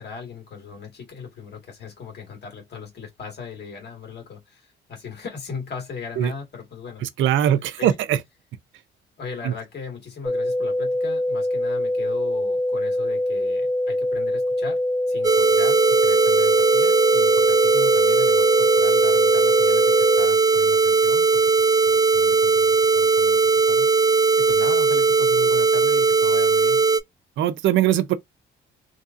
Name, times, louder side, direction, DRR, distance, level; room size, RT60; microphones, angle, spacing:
voice 1, 0.0-7.1 7.8-8.0 9.2-14.8 15.1-26.8, left 5 dB, 55° left, 1.6 m, -38 dB
voice 2, 7.0-8.2 9.4-9.5 27.4-28.1, right 11 dB, 75° right, 0.5 m, -21 dB
sound 1, 10.3-20.3, left 1 dB, ahead, 0.7 m, -24 dB
sound 2, 15.2-27.0, right 4 dB, 20° right, 0.3 m, -18 dB
2.8 x 2.6 x 2.5 m
cardioid pair, 90°, 20 cm